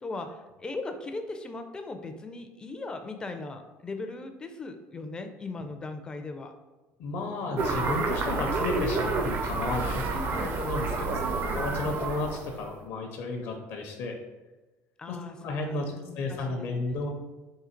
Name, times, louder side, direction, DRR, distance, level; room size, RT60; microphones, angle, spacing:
voice 1, 0.0-6.5 10.1-10.5 11.1-11.6 15.0-15.4 15.6-17.0, left 3 dB, 15° left, 6 dB, 0.4 m, -39 dB
voice 2, 7.0-10.1 10.4-14.2 15.1-17.1, left 3 dB, 60° left, 2 dB, 0.6 m, -33 dB
sound 1, 7.6-12.7, right 3 dB, 40° right, 0.5 m, -29 dB
3.8 x 2.7 x 4.4 m, 1.2 s
cardioid pair, 165°, 5 cm